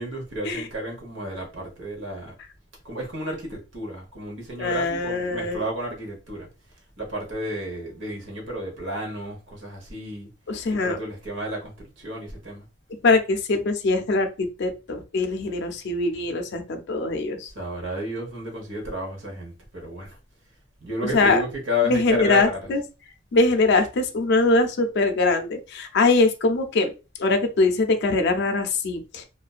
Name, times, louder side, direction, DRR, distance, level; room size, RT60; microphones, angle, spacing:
voice 1, 0.0-2.4 2.8-6.5 7.0-10.3 10.7-12.7 17.4-20.2 20.8-22.7, equal, 70° right, 1.0 m, -32 dB
voice 2, 4.6-5.6 10.5-11.0 13.0-17.5 21.1-21.4 21.8-22.8 23.3-26.9 27.2-29.2, left 3 dB, 60° left, 0.5 m, -22 dB
2.5 x 2.1 x 2.3 m
head